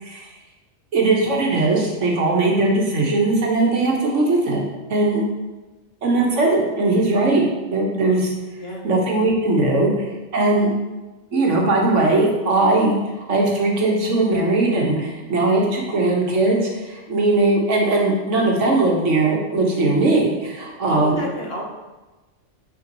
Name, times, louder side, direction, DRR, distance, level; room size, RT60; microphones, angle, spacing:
voice 1, 0.9-4.6 4.9-5.2 6.0-7.4 7.7-8.3 8.8-9.9 10.3-10.7 11.3-13.0 13.3-21.3, right 2 dB, 80° right, -1 dB, 1.6 m, -19 dB
voice 2, 20.9-21.6, equal, 55° left, -2 dB, 1.7 m, -29 dB
8.8 x 5.0 x 3.0 m, 1.1 s
omnidirectional pair, 1.2 m